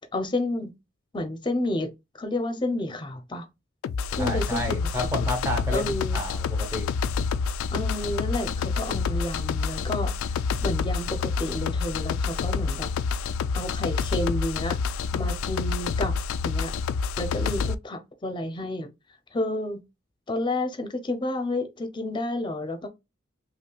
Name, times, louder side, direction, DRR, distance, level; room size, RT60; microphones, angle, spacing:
voice 1, 0.1-0.7 1.1-1.9 2.2-3.5 4.1-4.8 5.2-5.3 5.7-6.2 7.7-10.1 10.6-12.9 13.6-14.8 15.1-16.1 16.4-16.7 17.2-18.9 19.3-19.8 20.3-22.9, left 1 dB, 25° left, 0.6 m, -30 dB
sound 1, 3.8-17.7, left 5 dB, 85° left, 0.3 m, -28 dB
voice 2, 4.2-5.9 6.1-6.9, left 1 dB, 15° right, 0.8 m, -30 dB
5.3 x 2.1 x 2.3 m
head